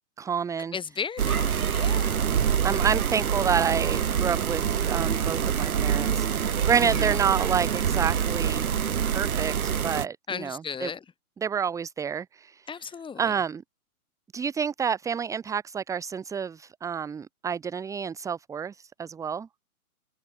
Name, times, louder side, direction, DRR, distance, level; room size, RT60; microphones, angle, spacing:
voice 1, 0.2-0.7 2.6-8.6 9.1-10.9 11.4-12.7 13.2-13.6 14.3-19.5, right 7 dB, 5° right, 1.0 m, -29 dB
voice 2, 0.7-2.3 6.8-7.1 10.3-11.0 12.7-13.3, left 6 dB, 10° left, 5.9 m, -35 dB
sound 1, 1.2-10.1, right 8 dB, 70° right, 2.9 m, -25 dB
hypercardioid pair, 130°, 45 cm